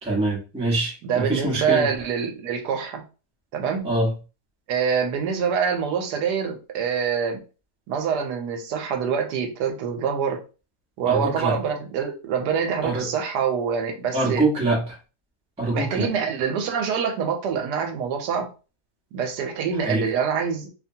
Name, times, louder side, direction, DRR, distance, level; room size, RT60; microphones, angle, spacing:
voice 1, 0.0-1.9 3.8-4.1 11.1-11.6 12.8-13.1 14.1-14.9 15.6-16.1 19.8-20.1, right 2 dB, 5° right, -2 dB, 0.5 m, -24 dB
voice 2, 1.0-3.0 3.5-3.9 4.7-7.4 7.9-10.4 11.0-14.4 15.7-18.5 19.1-20.7, right 7 dB, 80° right, 4 dB, 1.2 m, -25 dB
2.9 x 2.1 x 2.7 m, 0.33 s
omnidirectional pair, 1.7 m